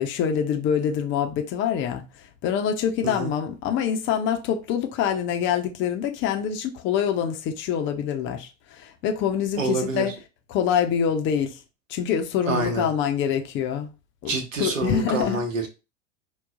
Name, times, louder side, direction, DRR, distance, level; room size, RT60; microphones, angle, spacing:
voice 1, 0.0-2.0 2.4-10.1 10.5-11.6 11.9-13.9 14.2-15.4, left 8 dB, 30° left, 0.6 m, -25 dB
voice 2, 9.6-10.1 12.5-12.9 14.3-15.7, right 3 dB, 75° right, 1.0 m, -27 dB
5.5 x 2.2 x 2.4 m
figure-of-eight pair, 85°, 39 cm